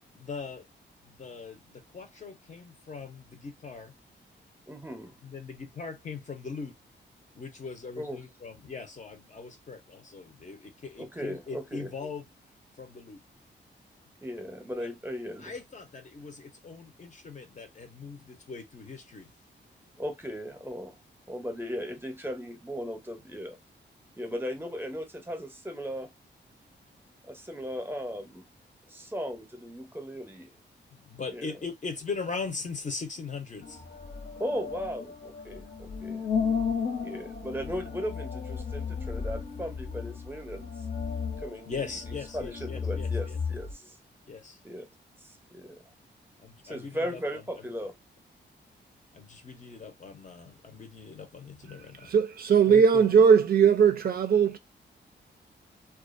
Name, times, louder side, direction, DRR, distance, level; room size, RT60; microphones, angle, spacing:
voice 1, 0.1-0.7 1.0-3.9 5.2-6.7 7.3-12.2 12.8-13.2 14.8-14.9 15.4-19.3 31.0-33.8 41.7-43.4 44.3-44.6 46.4-47.4 49.1-52.1 52.7-53.1, left 4 dB, 40° left, 0.7 m, -40 dB
voice 2, 4.7-5.1 8.0-8.2 11.0-12.1 14.2-15.5 20.0-21.0 21.3-23.6 24.2-26.1 27.2-28.5 28.9-30.5 31.3-31.5 34.4-36.2 37.0-40.7 41.4-44.0 44.6-44.8 45.2-45.8 46.6-48.0, equal, 10° right, 0.7 m, -37 dB
sound 1, 33.6-43.7, left 6 dB, 60° left, 1.0 m, -34 dB
voice 3, 52.0-54.6, right 6 dB, 50° right, 0.4 m, -20 dB
2.4 x 2.3 x 2.4 m
cardioid pair, 95°, 19 cm